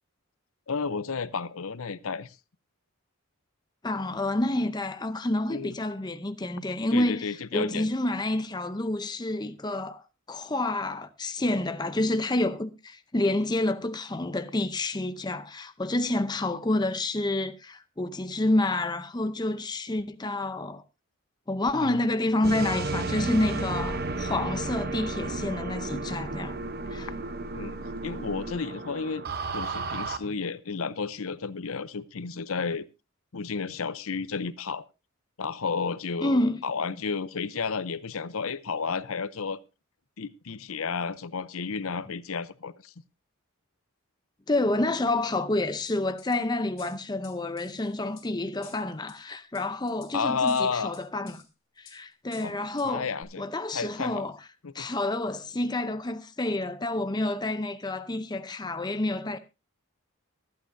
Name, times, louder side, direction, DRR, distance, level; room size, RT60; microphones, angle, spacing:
voice 1, 0.7-2.4 5.5-5.7 6.9-7.9 21.8-21.9 27.5-27.8 28.0-29.3 29.5-32.8 33.3-34.9 35.4-39.6 40.2-42.9 50.1-50.9 52.4-52.6 52.8-53.5 53.7-54.3 54.6-54.9, left 5 dB, 75° left, 0.7 m, -32 dB
voice 2, 3.8-10.0 10.3-20.8 21.5-26.6 26.9-27.1 36.2-36.6 44.5-51.4 51.8-53.1 53.4-54.4 54.7-59.4, left 2 dB, 20° left, 0.6 m, -28 dB
sound 1, 22.4-30.2, right 2 dB, 45° right, 0.9 m, -33 dB
sound 2, 45.9-46.4 46.8-48.3 48.6-49.2 49.5-50.1 50.5-51.5 51.8-52.0 52.3-52.9 53.2-53.3, left 7 dB, 40° left, 4.1 m, -51 dB
24.0 x 8.8 x 2.6 m
head